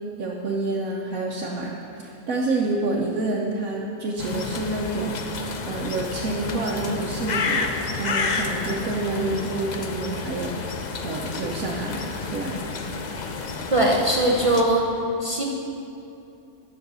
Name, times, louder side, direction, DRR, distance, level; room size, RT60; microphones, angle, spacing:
voice 1, 0.2-1.7 2.0-10.8 11.0-12.6, right 2 dB, 80° right, -3 dB, 1.3 m, -28 dB
sound 1, 4.2-14.6, left 4 dB, 45° left, 0.6 m, -30 dB
voice 2, 13.7-14.8 15.2-15.4, right 1 dB, 30° right, -2 dB, 0.7 m, -20 dB
10.5 x 5.8 x 6.8 m, 2.7 s
omnidirectional pair, 1.4 m